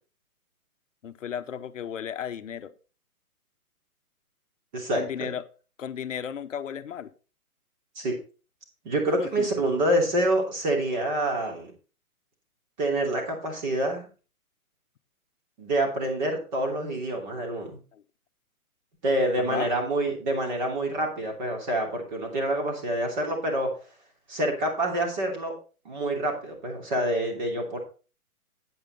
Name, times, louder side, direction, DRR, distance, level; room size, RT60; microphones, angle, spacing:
voice 1, 1.0-2.7 5.0-5.4 5.8-7.1 9.2-9.5 17.9-18.0 19.4-19.7, left 8 dB, 55° left, 12 dB, 0.9 m, -34 dB
voice 2, 4.7-5.3 7.9-8.2 8.8-11.7 12.8-14.1 15.6-17.8 19.0-23.7 24.3-25.5 25.8-27.8, right 1 dB, 30° right, 2 dB, 2.9 m, -27 dB
8.9 x 8.7 x 4.1 m, 0.35 s
hypercardioid pair, 170°, 45 cm